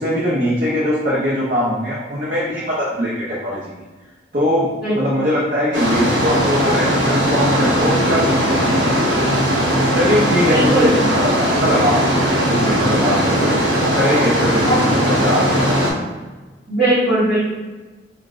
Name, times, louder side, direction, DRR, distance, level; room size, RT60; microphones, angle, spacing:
voice 1, 0.0-3.7 4.3-9.1 9.9-13.6 13.9-15.7, equal, 45° right, -8 dB, 0.8 m, -21 dB
sound 1, 5.7-15.9, equal, 85° right, 1.1 m, -18 dB
voice 2, 10.5-11.0 14.6-14.8 16.7-17.5, right 1 dB, ahead, -16 dB, 1.1 m, -18 dB
5.2 x 2.4 x 2.5 m, 1.2 s
head